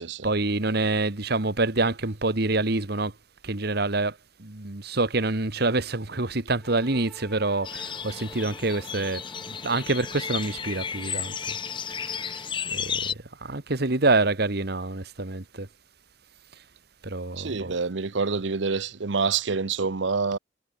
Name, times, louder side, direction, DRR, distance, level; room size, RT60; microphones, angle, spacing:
voice 1, 0.2-3.1 3.4-11.6 11.9-12.4 12.7-15.7 17.0-17.7, right 2 dB, 60° right, 1.9 m, -27 dB
sound 1, 6.6-12.5, equal, ahead, 3.0 m, -49 dB
sound 2, 7.6-13.1, left 7 dB, 25° left, 0.5 m, -33 dB
voice 2, 17.4-20.4, right 4 dB, 80° right, 0.9 m, -27 dB
head